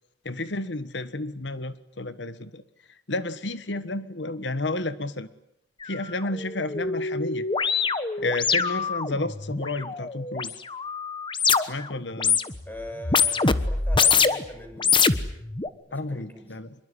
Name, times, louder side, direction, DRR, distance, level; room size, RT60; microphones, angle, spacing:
voice 1, 0.2-2.6 3.1-5.3 5.8-7.5 8.2-10.6 11.7-12.4 15.9-16.7, left 2 dB, 70° left, 13 dB, 1.4 m, -31 dB
sound 1, 5.8-5.9 6.3-11.9 12.1-12.7 13.0-14.5 14.8-15.7, left 5 dB, 25° left, 1.2 m, -24 dB
voice 2, 12.7-15.1 15.9-16.6, left 1 dB, 10° left, 6 dB, 5.8 m, -41 dB
26.0 x 22.5 x 9.8 m, 0.80 s
head